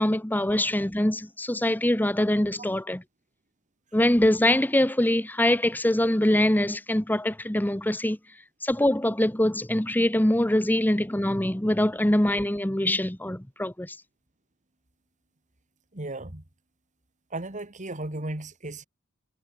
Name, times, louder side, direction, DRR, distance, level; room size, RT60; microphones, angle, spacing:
voice 1, 0.0-3.0 3.9-8.2 8.6-14.0, left 1 dB, 10° left, 1.1 m, -23 dB
voice 2, 15.9-16.4 17.3-18.9, right 2 dB, 35° right, 2.5 m, -35 dB
head